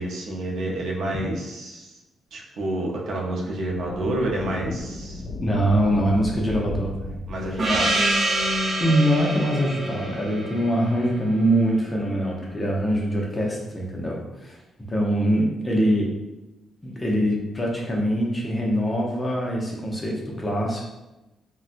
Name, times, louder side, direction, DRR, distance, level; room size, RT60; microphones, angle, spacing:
voice 1, 0.0-1.9 2.3-5.3 7.3-7.9, right 1 dB, 70° right, -1 dB, 0.6 m, -29 dB
sound 1, 3.7-9.3, left 2 dB, 45° left, 1.2 m, -35 dB
voice 2, 5.4-7.2 7.5-7.7 8.8-14.6 14.9-16.1 16.8-20.8, equal, 20° left, -2 dB, 0.6 m, -23 dB
Gong, 7.6-11.9, right 1 dB, 40° right, 0.9 m, -26 dB
4.0 x 2.1 x 2.5 m, 1.0 s
cardioid pair, 135°, 0 cm